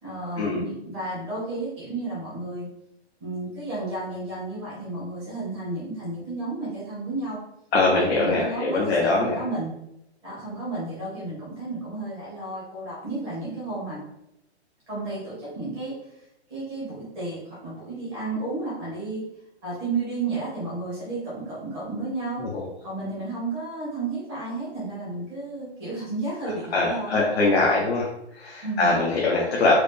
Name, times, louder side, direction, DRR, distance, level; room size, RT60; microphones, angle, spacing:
voice 1, 0.0-2.7 3.2-7.4 7.9-9.7 10.2-14.0 14.9-15.9 16.5-19.2 19.6-22.4 22.8-27.2 28.6-29.0, right 2 dB, ahead, -28 dB, 0.3 m, -32 dB
voice 2, 7.7-9.4 22.4-22.6 26.7-28.1 28.3-29.8, left 3 dB, 70° left, -3 dB, 1.0 m, -22 dB
4.9 x 2.1 x 3.3 m, 0.82 s
hypercardioid pair, 165°, 33 cm